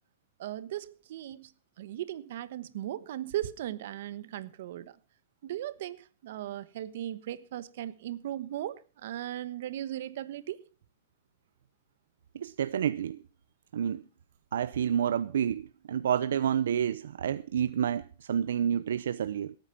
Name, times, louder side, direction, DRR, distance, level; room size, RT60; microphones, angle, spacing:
voice 1, 0.4-1.5 1.8-5.0 5.4-10.6, right 12 dB, 60° right, 1.1 m, -37 dB
voice 2, 12.3-13.2 13.7-14.0 14.5-19.5, right 9 dB, 85° right, 0.6 m, -29 dB
18.0 x 8.9 x 5.7 m
hypercardioid pair, 155°, 0 cm